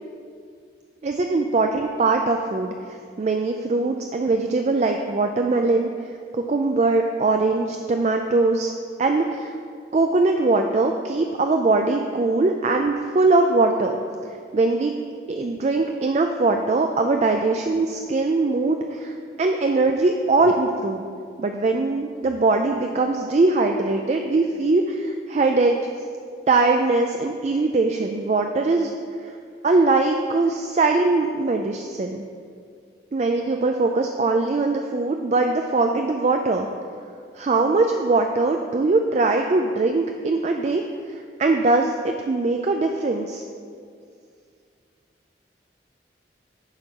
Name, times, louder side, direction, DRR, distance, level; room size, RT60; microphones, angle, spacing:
voice 1, 1.0-5.9 6.3-8.7 9.0-9.5 9.9-14.0 14.5-14.9 15.3-21.1 21.4-25.8 26.5-28.9 29.2-29.3 29.6-32.2 33.1-36.7 37.3-40.8 41.1-43.4, right 3 dB, 35° right, 4 dB, 0.3 m, -21 dB
9.6 x 4.5 x 5.3 m, 2.3 s
head